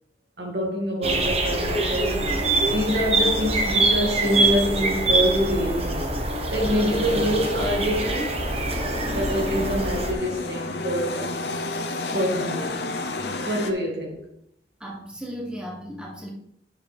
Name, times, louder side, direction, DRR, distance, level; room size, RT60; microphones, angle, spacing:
voice 1, 0.4-2.4 2.7-6.1 6.5-8.4 9.1-11.6 12.1-12.8 13.5-14.2, equal, 65° right, 2.4 m, -26 dB
sound 1, 1.0-10.1, right 2 dB, 35° right, 1.1 m, -24 dB
sound 2, 6.6-13.7, left 2 dB, 75° left, 1.0 m, -32 dB
voice 2, 14.8-16.3, equal, 5° right, 1.1 m, -36 dB
9.9 x 6.9 x 3.6 m
head